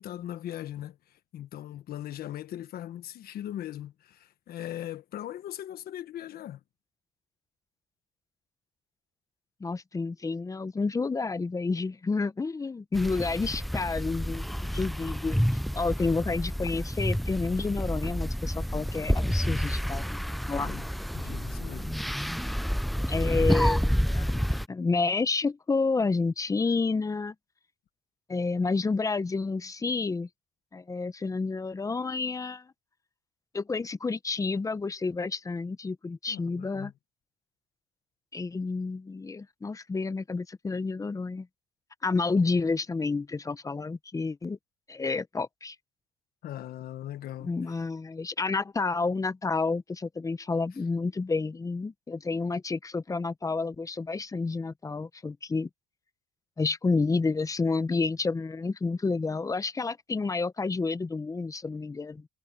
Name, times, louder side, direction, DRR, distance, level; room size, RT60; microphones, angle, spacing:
voice 1, 0.0-6.6 20.6-20.9 21.1-22.0 36.3-36.9 46.4-47.5, left 12 dB, 65° left, 1.3 m, -39 dB
voice 2, 9.6-15.4 15.7-20.2 20.5-20.7 23.1-27.3 28.3-30.3 30.7-32.7 33.5-36.9 38.3-41.5 42.0-44.6 44.9-45.8 47.4-55.7 56.6-62.3, left 4 dB, 20° left, 0.9 m, -30 dB
sound 1, 12.9-24.7, equal, ahead, 0.3 m, -29 dB
cardioid pair, 110°, 17 cm